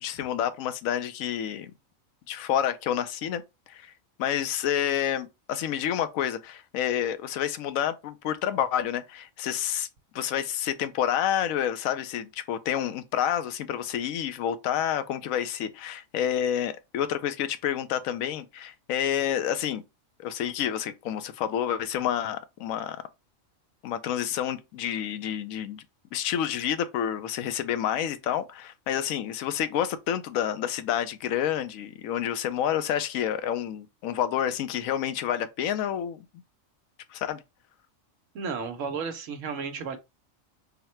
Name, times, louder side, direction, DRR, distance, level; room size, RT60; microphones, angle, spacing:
voice 1, 0.0-1.7 2.3-3.4 3.7-3.9 4.2-9.9 10.1-19.8 20.2-23.0 23.8-25.8 26.1-36.3 37.1-37.4, left 10 dB, 90° left, 1.0 m, -29 dB
voice 2, 38.3-40.0, right 5 dB, 70° right, 1.1 m, -33 dB
4.0 x 2.1 x 4.2 m
omnidirectional pair, 1.4 m